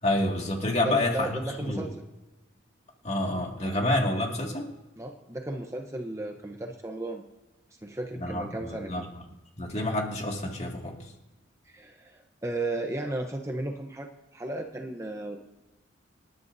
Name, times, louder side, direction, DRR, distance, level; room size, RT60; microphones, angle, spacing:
voice 1, 0.0-1.9 3.0-4.7 8.1-9.1 9.6-11.0, left 1 dB, 35° left, 0 dB, 2.1 m, -28 dB
voice 2, 0.8-2.0 5.0-7.2 7.8-9.1 11.7-15.5, right 2 dB, 15° right, 3 dB, 0.8 m, -35 dB
26.5 x 11.5 x 2.7 m, 1.1 s
head